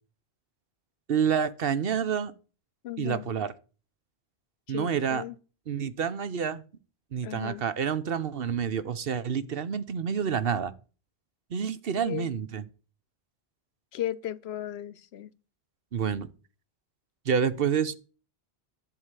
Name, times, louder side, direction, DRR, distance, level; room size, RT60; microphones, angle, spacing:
voice 1, 1.1-2.3 3.0-3.5 4.7-5.2 5.7-6.6 7.1-10.7 11.5-12.7 15.9-16.3 17.3-18.0, right 7 dB, 65° right, 1.0 m, -28 dB
voice 2, 2.8-3.2 4.7-5.4 7.2-7.6 12.0-12.3 13.9-15.3, left 12 dB, 80° left, 0.9 m, -36 dB
11.0 x 4.8 x 8.2 m
omnidirectional pair, 1.1 m